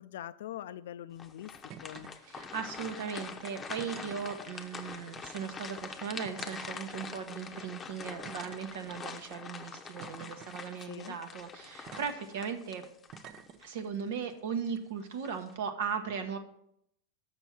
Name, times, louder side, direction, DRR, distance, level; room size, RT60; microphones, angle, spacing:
voice 1, 0.0-2.2 10.8-11.2, left 12 dB, 70° left, 15 dB, 0.4 m, -43 dB
sound 1, 1.2-13.8 14.3-14.4 15.0-15.5, left 5 dB, 20° left, 0.8 m, -44 dB
sound 2, 1.7-2.1 2.4-2.8 3.8-4.5 5.5-5.7 6.2-6.7 7.4-7.5 8.2-9.1 10.0-10.6 11.9-12.2 13.1-13.6 14.7-14.8, right 8 dB, 45° right, 0.7 m, -49 dB
voice 2, 2.2-12.8 13.6-16.4, right 6 dB, 65° right, 7 dB, 1.0 m, -38 dB
6.7 x 6.1 x 6.0 m, 0.75 s
hypercardioid pair, 100°, 0 cm